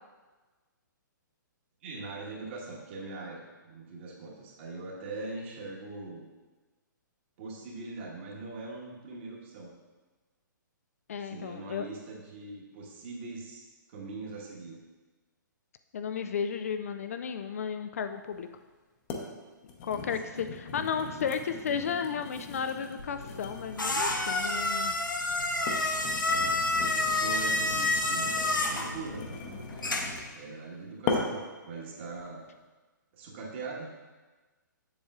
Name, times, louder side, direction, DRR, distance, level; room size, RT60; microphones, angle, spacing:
voice 1, 1.8-6.2 7.4-9.7 11.2-14.8 20.0-20.4 25.5-25.7 26.3-26.5 26.8-29.2 30.3-32.4 33.1-33.9, right 3 dB, 35° right, -2 dB, 1.3 m, -42 dB
voice 2, 11.1-11.9 15.9-18.5 19.8-25.0, left 7 dB, 45° left, 8 dB, 0.3 m, -33 dB
sound 1, 18.3-18.4 19.1-19.3 19.6-24.8 25.4-30.4 31.1-31.5 32.0-32.3, left 4 dB, 30° left, 0.8 m, -39 dB
sound 2, 23.0-30.3, left 2 dB, 75° left, 0.8 m, -29 dB
7.3 x 7.2 x 2.4 m, 1.3 s
figure-of-eight pair, 125°, 11 cm